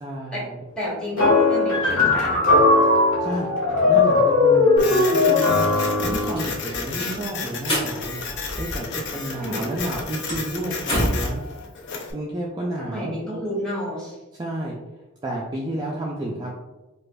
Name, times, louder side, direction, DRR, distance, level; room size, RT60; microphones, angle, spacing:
voice 1, 0.0-0.6 3.2-3.5 3.9-11.4 12.1-13.2 14.3-14.8 15.2-16.5, right 1 dB, 20° right, -4 dB, 0.3 m, -31 dB
voice 2, 0.8-2.6 3.7-4.0 9.2-9.6 12.8-14.2, equal, 5° left, -6 dB, 1.0 m, -31 dB
sound 1, 1.2-6.4, left 3 dB, 75° left, 1.4 m, -18 dB
Printer, 4.8-12.1, left 4 dB, 50° left, 0.5 m, -32 dB
sound 2, 5.4-9.1 9.4-11.3, equal, 25° left, 1.4 m, -29 dB
4.7 x 2.4 x 2.3 m, 1.1 s
head